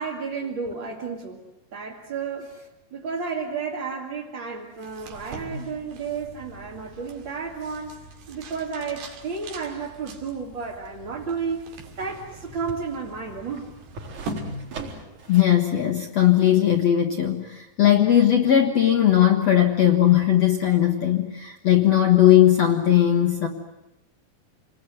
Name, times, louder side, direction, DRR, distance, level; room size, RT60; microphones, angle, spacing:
voice 1, 0.0-1.4 1.7-2.5 2.9-11.6 12.0-13.7, right 5 dB, 35° right, -3 dB, 2.4 m, -32 dB
sound 1, 4.7-15.3, right 2 dB, 80° right, 4.5 m, -41 dB
sound 2, 10.5-15.6 16.0-16.1, right 2 dB, 50° right, 5.2 m, -42 dB
voice 2, 15.3-23.5, left 11 dB, 55° left, 2 dB, 1.9 m, -18 dB
28.0 x 20.5 x 9.4 m, 0.93 s
omnidirectional pair, 4.6 m